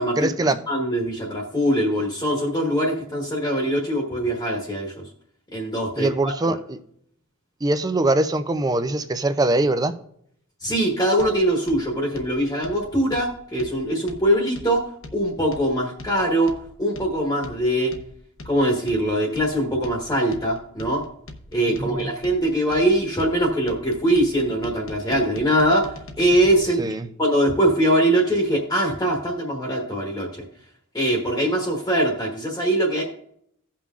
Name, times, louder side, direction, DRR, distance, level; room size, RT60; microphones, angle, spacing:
voice 1, 0.2-0.6 6.0-6.8 7.6-9.9 21.8-22.1 26.8-27.1, right 2 dB, 15° right, 0.4 m, -22 dB
voice 2, 0.7-5.0 5.5-6.1 6.4-6.5 10.6-14.8 15.1-16.5 16.8-17.9 18.4-21.0 21.5-26.9 27.2-30.4 30.9-33.0, right 1 dB, 15° left, 1.2 m, -22 dB
sound 1, 11.2-26.5, left 1 dB, 65° left, 0.9 m, -42 dB
16.5 x 5.7 x 2.4 m
head